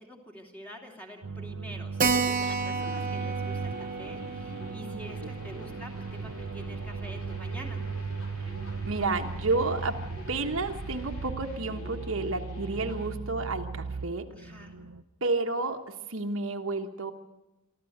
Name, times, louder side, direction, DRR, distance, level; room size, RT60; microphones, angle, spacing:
voice 1, 0.0-5.9 6.2-7.8 14.3-14.7, equal, 5° left, 1 dB, 2.8 m, -46 dB
sound 1, 1.2-15.0, right 4 dB, 80° right, 0.9 m, -37 dB
Keyboard (musical), 2.0-7.1 7.3-7.4 7.7-7.8 8.1-8.2 8.7-9.1, right 4 dB, 40° right, 1.2 m, -33 dB
sound 2, 2.2-13.1, left 1 dB, 75° left, 4.0 m, -47 dB
voice 2, 8.8-10.0 10.3-14.3 15.2-17.1, right 3 dB, 60° right, 4 dB, 1.3 m, -30 dB
24.0 x 14.0 x 8.0 m, 0.99 s
head